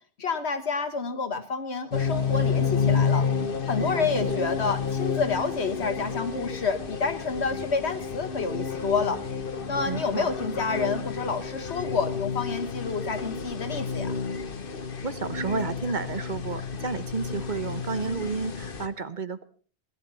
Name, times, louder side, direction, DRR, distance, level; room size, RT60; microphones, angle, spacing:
voice 1, 0.2-3.3 3.7-9.2 9.7-14.2, left 4 dB, 85° left, 8 dB, 1.8 m, -29 dB
sound 1, 1.9-18.9, left 5 dB, 55° left, 1.3 m, -30 dB
voice 2, 3.8-4.3 9.8-10.3 15.0-19.5, right 4 dB, 50° right, 13 dB, 1.1 m, -32 dB
18.0 x 11.0 x 5.6 m, 0.41 s
omnidirectional pair, 1.1 m